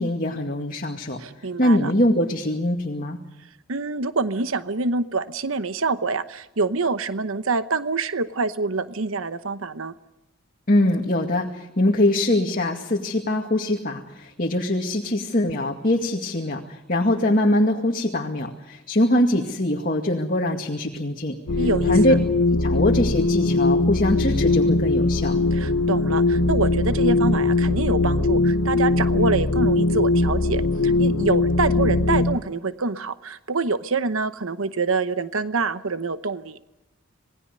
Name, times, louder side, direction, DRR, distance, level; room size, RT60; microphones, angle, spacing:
voice 1, 0.0-1.2 1.6-3.2 10.7-21.4 21.9-22.1 22.6-25.4, left 1 dB, 40° left, 1 dB, 2.2 m, -22 dB
voice 2, 1.2-1.9 3.7-9.9 21.6-22.2 25.5-36.6, right 3 dB, 75° right, 12 dB, 1.0 m, -26 dB
sound 1, 21.5-32.4, left 2 dB, 75° left, 1.3 m, -20 dB
27.5 x 20.0 x 6.7 m, 0.93 s
head